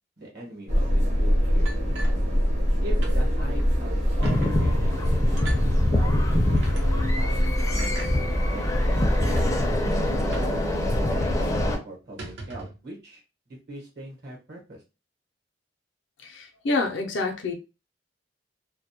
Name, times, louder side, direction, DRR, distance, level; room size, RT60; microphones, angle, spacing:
voice 1, 0.2-2.0 2.8-5.2 5.7-9.7 10.3-13.2 13.5-14.8, right 1 dB, 60° right, -2 dB, 1.0 m, -41 dB
sound 1, 0.7-11.8, equal, 35° right, 0.6 m, -24 dB
sound 2, 1.7-2.7 3.0-3.2 3.6-3.7 4.2-4.5 5.4-5.6 6.6-6.8 7.8-8.1 8.9-9.0 9.3-9.5 10.3-10.6 10.8-10.9 11.3-11.5 12.0-12.8, right 2 dB, 75° right, 0.7 m, -40 dB
sound 3, 4.2-11.8, left 1 dB, 20° left, 0.4 m, -26 dB
voice 2, 16.2-17.5, left 3 dB, 80° left, 2 dB, 0.5 m, -27 dB
2.2 x 2.0 x 2.8 m, 0.29 s
head